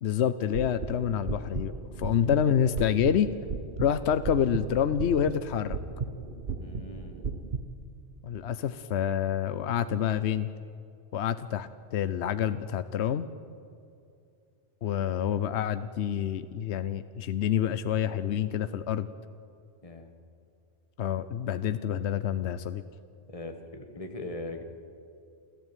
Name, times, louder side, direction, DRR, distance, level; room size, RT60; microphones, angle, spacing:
voice 1, 0.0-1.7 2.0-3.3 3.8-5.8 8.2-10.5 11.1-13.3 14.8-19.1 21.0-22.8, left 9 dB, 70° left, 12 dB, 1.0 m, -27 dB
sound 1, 0.5-7.6, right 4 dB, 50° right, 1.3 m, -36 dB
voice 2, 6.6-7.3 19.8-20.1 23.3-24.6, left 2 dB, 30° left, 6 dB, 1.7 m, -40 dB
28.5 x 13.0 x 9.2 m, 2.6 s
omnidirectional pair, 1.2 m